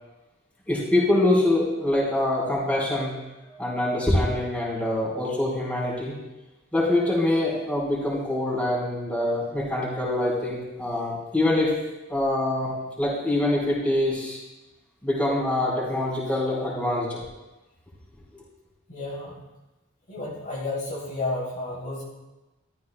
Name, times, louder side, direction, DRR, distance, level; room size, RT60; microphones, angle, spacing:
voice 1, 0.7-3.1 3.4-6.1 6.7-11.7 12.1-12.7 13.0-14.4 15.0-17.2 18.3-18.4, left 1 dB, 5° left, -6 dB, 4.3 m, -24 dB
voice 2, 18.9-19.4 20.1-22.0, left 2 dB, 40° left, -5 dB, 3.0 m, -31 dB
14.5 x 14.0 x 2.3 m, 1.0 s
head